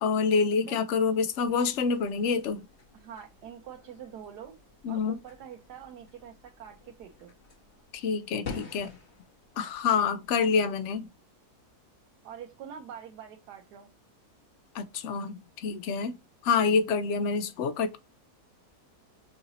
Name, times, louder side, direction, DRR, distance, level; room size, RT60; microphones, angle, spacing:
voice 1, 0.0-2.6 4.8-5.2 7.9-8.9 9.6-11.1 14.7-16.1 16.4-18.0, left 5 dB, 65° left, 0.7 m, -27 dB
sound 1, 1.4-11.1, left 5 dB, 45° left, 1.4 m, -49 dB
voice 2, 2.9-4.6 4.9-7.3 12.2-13.9, right 8 dB, 90° right, 1.2 m, -45 dB
5.7 x 2.7 x 2.7 m
omnidirectional pair, 1.7 m